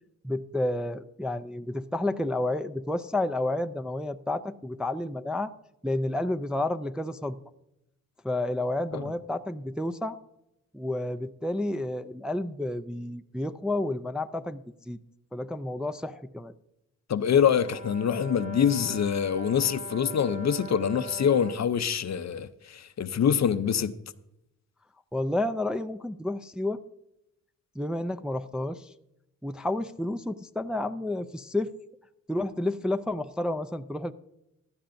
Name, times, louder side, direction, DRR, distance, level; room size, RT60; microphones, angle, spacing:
voice 1, 0.2-5.5 5.8-7.4 8.2-10.2 10.7-14.6 14.9-15.0 15.3-16.5 25.1-26.8 27.8-28.9 29.4-31.7 32.3-34.1, left 1 dB, ahead, 0.4 m, -30 dB
voice 2, 17.1-23.9, left 8 dB, 50° left, 0.6 m, -25 dB
Brass instrument, 17.3-21.7, right 3 dB, 25° right, 1.4 m, -41 dB
16.0 x 11.5 x 2.6 m
cardioid pair, 75°, 35 cm